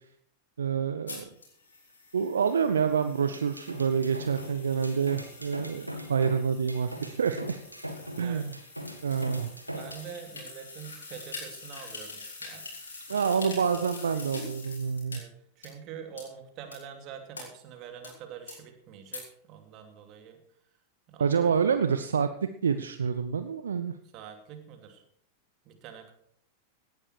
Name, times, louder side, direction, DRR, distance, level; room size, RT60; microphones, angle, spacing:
voice 1, 0.6-1.2 2.1-7.6 8.2-8.5 9.0-9.5 13.1-15.2 21.2-22.3 22.6-23.9, right 6 dB, 70° right, 10 dB, 0.7 m, -27 dB
sound 1, 1.1-15.2 15.6-15.7 16.2-16.3 16.7-16.8 17.3-17.4 18.0-18.1 18.5-18.6 19.1-19.2, left 3 dB, 75° left, 6.0 m, -45 dB
sound 2, 3.2-10.1, equal, 85° right, 2.0 m, -40 dB
voice 2, 9.7-12.7 13.1-13.3 14.1-14.3 15.1-20.4 21.1-21.7 24.1-25.0 25.6-26.1, right 8 dB, 40° right, 5 dB, 2.9 m, -45 dB
17.5 x 12.0 x 4.7 m, 0.66 s
figure-of-eight pair, 90°, 0 cm